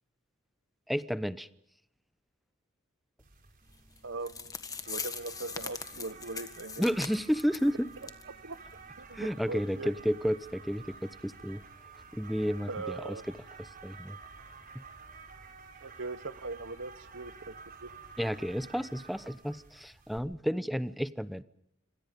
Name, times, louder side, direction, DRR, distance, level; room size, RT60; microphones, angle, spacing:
voice 1, 0.9-1.5 6.8-7.9 9.1-11.6 12.1-13.0 13.8-14.2 14.7-14.8 18.2-21.4, equal, ahead, 15 dB, 0.8 m, -31 dB
sound 1, 3.2-20.2, right 4 dB, 45° right, 4.7 m, -51 dB
sound 2, 4.0-4.1 4.3-7.7 8.0-8.2 8.5-8.6 9.1-9.2, left 5 dB, 20° left, 1.7 m, -40 dB
voice 2, 4.0-4.5 4.9-6.8 8.3-8.6 9.0-9.9 12.7-13.3 15.8-17.9, right 3 dB, 65° right, 16 dB, 1.0 m, -40 dB
26.5 x 26.0 x 5.2 m, 0.77 s
head